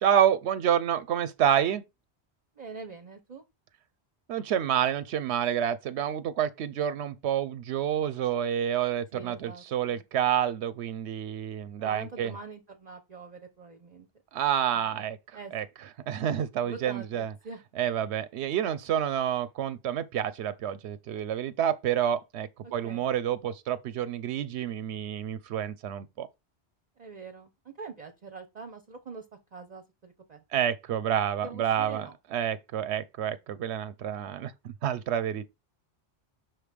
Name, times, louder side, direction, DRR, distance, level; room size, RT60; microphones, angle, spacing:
voice 1, 0.0-1.8 4.3-12.3 14.3-15.2 15.5-15.6 16.1-17.3 17.8-26.3 30.5-34.5 34.8-35.4, right 9 dB, 90° right, 0.9 m, -28 dB
voice 2, 2.6-3.4 9.1-10.0 11.8-14.1 14.7-15.1 15.3-15.5 16.6-17.6 22.8-23.1 27.0-29.2 29.5-30.4 31.4-32.2, right 4 dB, 45° right, 0.7 m, -44 dB
6.0 x 3.2 x 5.0 m
omnidirectional pair, 1.1 m